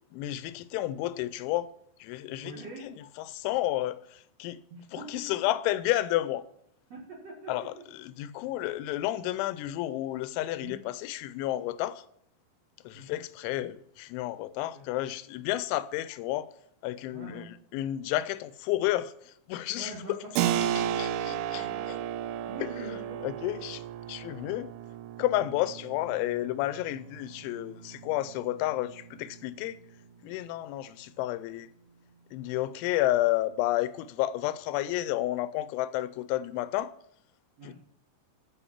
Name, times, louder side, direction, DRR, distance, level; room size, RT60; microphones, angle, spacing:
voice 1, 0.1-1.7 2.0-4.6 4.9-6.5 7.5-12.0 12.8-16.5 16.8-20.2 21.0-22.0 22.8-23.8 24.1-24.7 25.2-29.8 30.2-31.7 32.3-36.9 37.6-37.7, left 15 dB, 85° left, 3.0 m, -31 dB
voice 2, 2.4-2.8 4.7-5.4 6.9-7.9 10.6-10.8 12.9-13.2 14.7-14.8 17.1-17.5 19.8-22.1 22.5-23.2 37.6-37.7, right 2 dB, 50° right, 2.0 m, -44 dB
Keyboard (musical), 20.4-30.7, right 10 dB, 90° right, 3.1 m, -35 dB
9.9 x 5.5 x 7.3 m
omnidirectional pair, 5.3 m